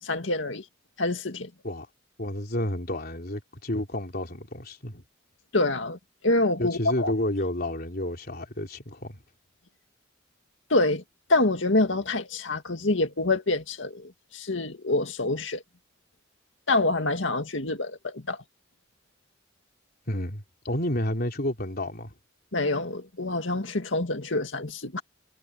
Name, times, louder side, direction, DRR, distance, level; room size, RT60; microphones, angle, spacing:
voice 1, 0.0-0.7 1.0-1.5 5.5-6.0 6.2-7.1 10.7-11.0 11.3-15.6 16.7-18.4 22.5-25.0, left 2 dB, 70° left, 2.2 m, -26 dB
voice 2, 2.2-5.0 6.6-9.2 20.1-22.2, left 1 dB, 50° left, 3.7 m, -30 dB
head